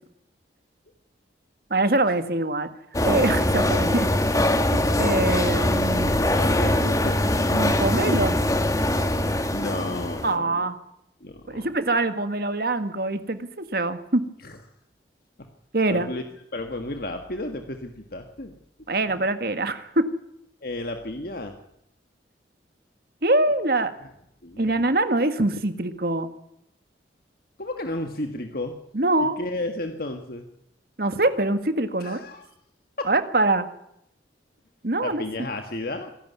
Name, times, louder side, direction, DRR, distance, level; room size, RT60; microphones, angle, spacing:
voice 1, 1.7-2.7 3.0-4.1 4.7-6.2 7.5-8.4 10.2-10.7 11.5-14.2 15.7-16.1 18.9-20.1 23.2-23.9 24.6-26.3 28.9-29.4 31.0-32.2 33.1-33.7 34.8-35.2, right 2 dB, 55° right, 10 dB, 1.7 m, -24 dB
sound 1, 2.9-10.3, left 1 dB, 20° left, 1.8 m, -22 dB
voice 2, 6.3-7.2 8.0-8.3 9.5-10.7 11.2-11.7 14.4-14.6 15.9-16.2 16.5-18.6 19.1-19.2 20.6-21.5 24.0-24.1 24.4-24.8 27.6-28.8 29.2-30.5 32.0-32.5 33.0-33.1 35.0-36.1, left 2 dB, 55° left, 5 dB, 1.7 m, -32 dB
26.0 x 11.5 x 9.5 m, 0.78 s
head